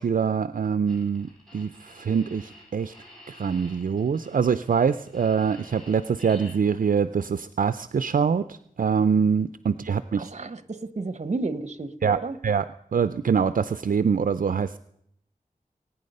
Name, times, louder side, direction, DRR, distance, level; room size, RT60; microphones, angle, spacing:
voice 1, 0.0-2.9 3.3-8.4 8.8-10.3 12.0-12.2 12.4-12.7 12.9-14.8, right 6 dB, 70° right, 13 dB, 0.4 m, -24 dB
sound 1, 0.9-6.5, left 1 dB, 5° left, 7.3 m, -49 dB
voice 2, 10.2-12.4, right 3 dB, 50° right, 14 dB, 0.9 m, -32 dB
22.0 x 9.3 x 5.4 m, 0.74 s
wide cardioid pair, 80°, 14 cm